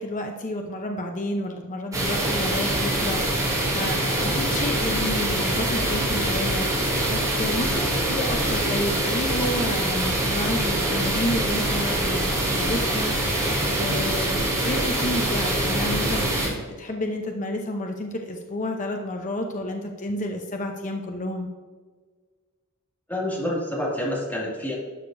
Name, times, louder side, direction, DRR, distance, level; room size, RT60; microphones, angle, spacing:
voice 1, 0.0-21.5, left 1 dB, 35° left, 3 dB, 0.7 m, -30 dB
sound 1, 1.9-16.5, right 1 dB, 15° right, 2.2 m, -24 dB
voice 2, 23.1-24.7, left 1 dB, 10° left, -4 dB, 2.2 m, -28 dB
11.5 x 6.6 x 2.6 m, 1.5 s
head